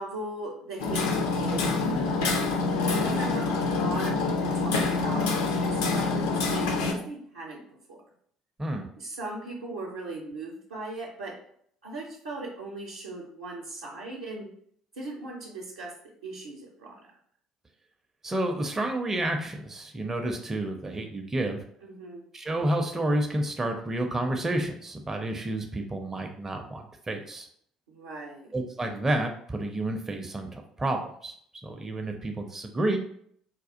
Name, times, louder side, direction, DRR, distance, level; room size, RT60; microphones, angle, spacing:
voice 1, 0.0-2.2 2.9-7.6 7.9-8.0 9.0-11.3 11.8-14.5 15.0-15.9 16.2-17.1 21.8-22.2 27.9-28.5, right 2 dB, 75° right, -4 dB, 0.6 m, -38 dB
Hammer, 0.8-6.9, left 3 dB, 65° left, 0.5 m, -26 dB
voice 2, 18.2-21.6 22.3-27.5 28.5-31.3 31.6-33.0, right 1 dB, 20° right, 3 dB, 0.4 m, -30 dB
4.1 x 2.3 x 2.5 m, 0.64 s
figure-of-eight pair, 55°, 2 cm